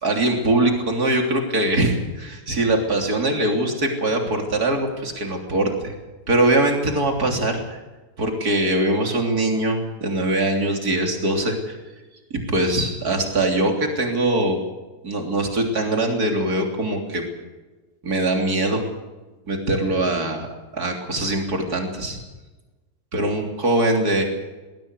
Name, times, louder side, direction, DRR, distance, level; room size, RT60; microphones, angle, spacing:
voice 1, 0.0-5.9 6.3-7.8 8.2-11.8 12.3-14.6 15.0-17.2 18.0-18.8 19.5-20.5 20.7-22.2 23.1-24.2, right 1 dB, 85° right, 3 dB, 3.8 m, -22 dB
21.5 x 16.5 x 8.1 m, 1.1 s
omnidirectional pair, 1.6 m